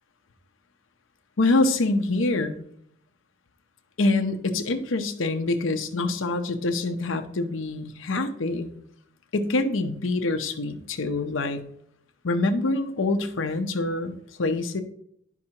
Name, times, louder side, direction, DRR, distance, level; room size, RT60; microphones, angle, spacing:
voice 1, 1.4-2.6 4.0-8.7 9.3-11.6 12.2-14.8, left 2 dB, 85° left, 8 dB, 0.7 m, -25 dB
10.5 x 5.9 x 2.9 m, 0.71 s
head